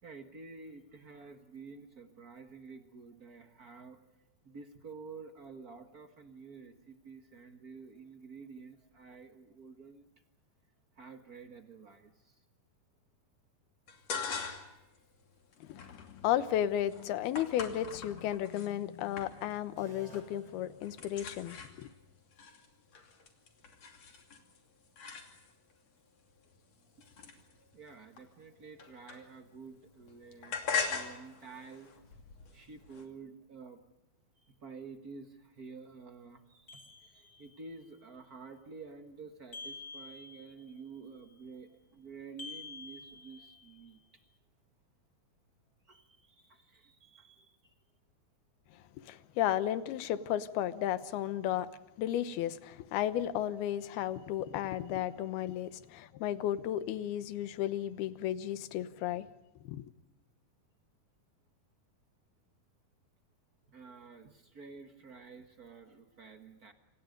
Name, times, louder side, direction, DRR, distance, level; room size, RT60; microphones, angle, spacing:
voice 1, 0.0-10.1 10.9-12.4 27.0-27.1 27.5-33.8 34.4-44.2 45.8-47.7 63.7-66.7, right 4 dB, 75° right, 0.8 m, -50 dB
sound 1, 13.9-14.8 15.2-18.7 19.2-19.7 19.9-20.4 20.6-25.7 26.3-29.6 29.9-33.1, left 5 dB, 45° left, 3.6 m, -42 dB
voice 2, 15.6-21.9 49.1-51.7 52.0-59.3 59.6-59.8, left 11 dB, 85° left, 3.0 m, -34 dB
sound 2, 19.8-21.7, right 4 dB, 55° right, 4.5 m, -57 dB
sound 3, 36.7-37.7 39.5-40.8 42.4-43.9, left 3 dB, 25° left, 2.6 m, -48 dB
27.5 x 27.0 x 5.3 m
omnidirectional pair, 4.4 m